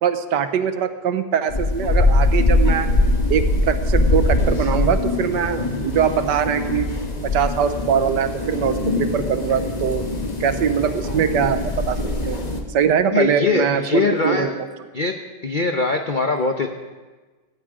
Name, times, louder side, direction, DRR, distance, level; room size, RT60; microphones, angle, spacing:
voice 1, 0.0-2.9 3.3-6.9 7.2-10.1 10.4-12.4 12.7-14.5, right 8 dB, 70° right, 10 dB, 1.3 m, -22 dB
sound 1, 1.5-12.6, left 2 dB, 25° left, 1.1 m, -22 dB
voice 2, 13.1-14.5 14.9-15.1 15.4-16.7, left 4 dB, 65° left, 4 dB, 0.5 m, -21 dB
17.5 x 15.0 x 3.7 m, 1.3 s
omnidirectional pair, 2.0 m